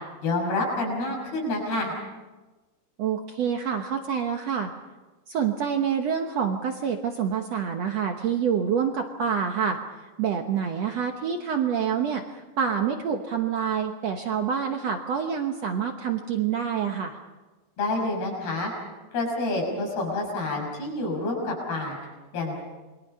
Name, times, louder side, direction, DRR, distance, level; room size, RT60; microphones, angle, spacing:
voice 1, 0.2-1.9 17.8-18.7 19.1-22.0 22.3-22.6, left 2 dB, 70° left, 0 dB, 8.1 m, -28 dB
voice 2, 3.0-4.7 5.3-9.8 10.2-17.2, right 7 dB, 75° right, 4 dB, 1.5 m, -27 dB
28.5 x 22.5 x 5.5 m, 1.2 s
omnidirectional pair, 4.6 m